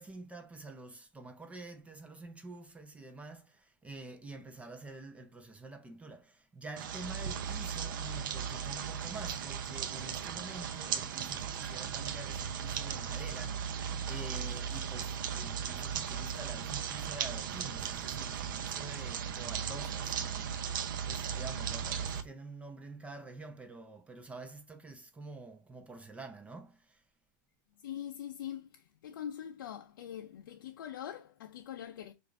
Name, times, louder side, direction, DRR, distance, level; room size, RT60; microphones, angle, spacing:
voice 1, 0.0-27.0, right 2 dB, 10° right, 0.6 m, -48 dB
sound 1, 6.8-22.2, right 8 dB, 85° right, 0.6 m, -37 dB
voice 2, 27.8-32.1, left 10 dB, 90° left, 0.4 m, -43 dB
4.9 x 2.5 x 2.4 m
supercardioid pair, 130°, 11 cm